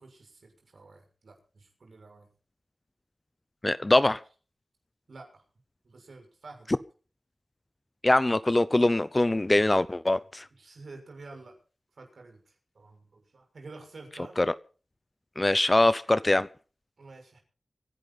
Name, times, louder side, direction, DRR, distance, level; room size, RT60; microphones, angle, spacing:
voice 1, 0.0-2.3 5.1-5.4 5.8-6.7 10.6-11.6 11.9-14.4 17.0-17.4, right 3 dB, 80° right, 3 dB, 6.6 m, -49 dB
voice 2, 3.6-4.2 8.0-10.4 14.4-14.5 15.4-16.5, left 2 dB, 30° left, 16 dB, 0.7 m, -23 dB
25.0 x 11.5 x 4.2 m, 0.38 s
cardioid pair, 50°, 0 cm